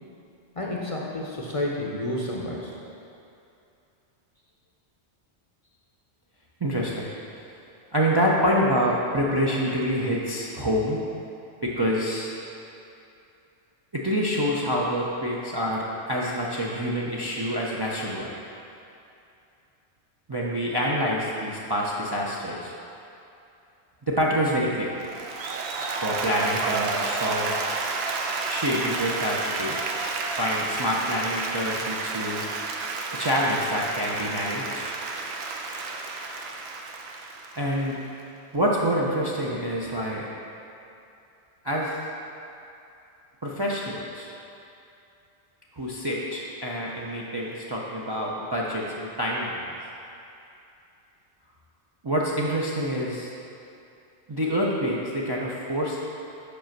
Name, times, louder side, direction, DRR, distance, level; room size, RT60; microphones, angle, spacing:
voice 1, 0.5-2.7, left 1 dB, 35° left, -3 dB, 0.6 m, -30 dB
voice 2, 6.6-7.1 7.9-11.0 11.6-12.3 13.9-18.3 20.3-22.7 24.1-24.9 26.0-27.5 28.5-29.8 30.4-32.5 33.1-34.8 37.6-38.0 38.5-40.2 41.6-41.9 43.4-44.3 45.8-49.7 52.0-53.3 54.3-56.0, equal, 35° right, -5 dB, 0.4 m, -26 dB
Applause, 25.0-38.2, right 4 dB, 75° right, 0.9 m, -31 dB
5.3 x 5.0 x 5.8 m, 2.7 s
omnidirectional pair, 1.2 m